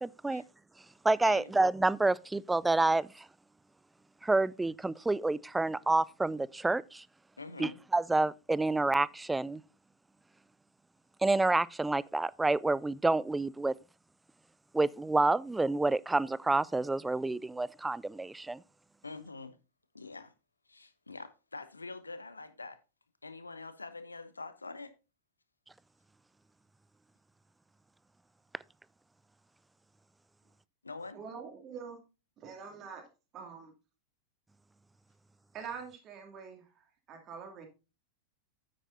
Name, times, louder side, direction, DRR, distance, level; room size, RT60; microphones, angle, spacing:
voice 1, 0.0-0.4 1.0-3.3 4.2-7.0 7.6-9.6 11.2-13.7 14.7-18.6, right 2 dB, 10° right, 0.3 m, -28 dB
voice 2, 7.4-7.8 19.0-19.6 19.9-20.3 20.7-22.8 23.2-24.9 30.8-31.2, left 3 dB, 80° left, 0.9 m, -45 dB
voice 3, 31.1-32.0 32.4-33.0 33.3-33.7 35.5-37.7, right 6 dB, 30° right, 2.5 m, -45 dB
9.2 x 8.9 x 2.6 m
figure-of-eight pair, 90°, 0 cm